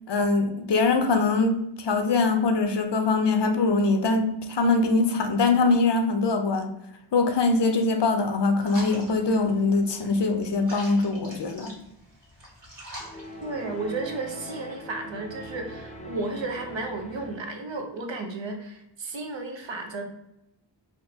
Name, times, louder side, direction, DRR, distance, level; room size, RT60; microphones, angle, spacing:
voice 1, 0.1-6.7 7.1-11.7, left 3 dB, 65° left, 0.6 m, -23 dB
sound 1, 8.6-14.0, equal, 45° right, 1.3 m, -44 dB
sound 2, 13.0-17.6, equal, 15° left, 0.5 m, -42 dB
voice 2, 13.4-20.0, right 3 dB, 80° right, 0.7 m, -33 dB
3.6 x 2.5 x 2.7 m
wide cardioid pair, 55°, 44 cm